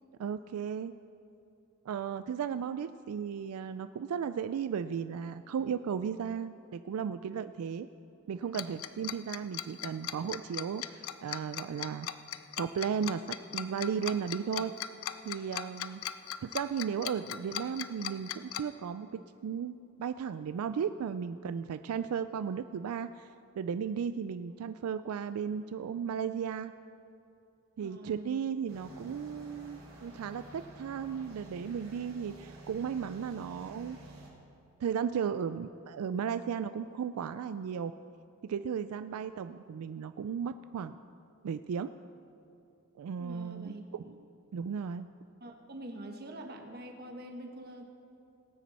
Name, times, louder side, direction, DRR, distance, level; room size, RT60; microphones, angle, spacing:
voice 1, 0.2-0.9 1.9-7.9 8.3-12.1 12.6-14.7 15.2-16.0 16.4-23.3 23.6-26.7 27.8-34.0 34.8-37.9 38.4-41.0 41.4-41.9 43.0-44.2 44.5-45.1, right 7 dB, 90° right, 11 dB, 0.3 m, -35 dB
Tick-tock, 8.5-18.6, left 11 dB, 70° left, 0.5 m, -38 dB
voice 2, 27.8-28.3 43.2-43.9 44.2-44.3 45.4-47.8, right 1 dB, 45° right, 3 dB, 1.2 m, -45 dB
sound 1, 28.7-34.3, right 1 dB, 70° right, 2.9 m, -50 dB
18.5 x 9.2 x 4.2 m, 2.7 s
head